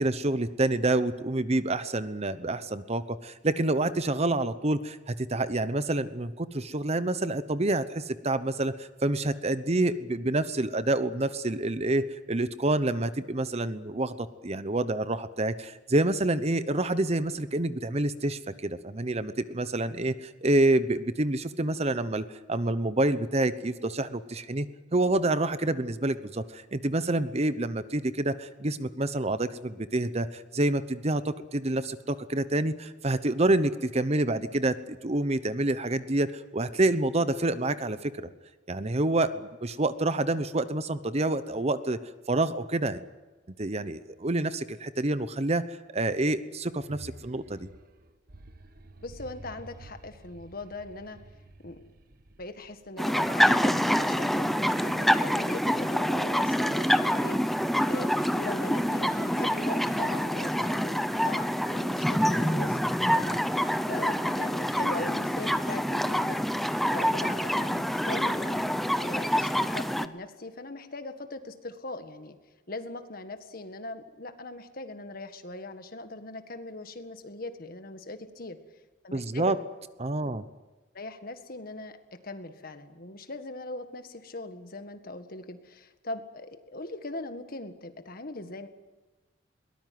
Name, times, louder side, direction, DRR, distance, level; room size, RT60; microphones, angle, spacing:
voice 1, 0.0-24.7 24.9-38.1 38.7-42.0 42.3-43.0 43.6-47.7 79.1-79.6 80.0-80.4, right 2 dB, 35° right, 13 dB, 0.9 m, -28 dB
sound 1, 46.6-53.0, right 2 dB, 50° right, 1.3 m, -50 dB
voice 2, 49.0-51.2 51.6-51.8 52.4-57.6 57.9-68.7 69.0-72.4 72.7-78.6 79.0-79.5 80.9-88.7, left 2 dB, 50° left, 8 dB, 1.8 m, -40 dB
sound 2, 53.0-70.1, equal, ahead, 0.8 m, -26 dB
22.0 x 19.0 x 9.4 m, 1.2 s
head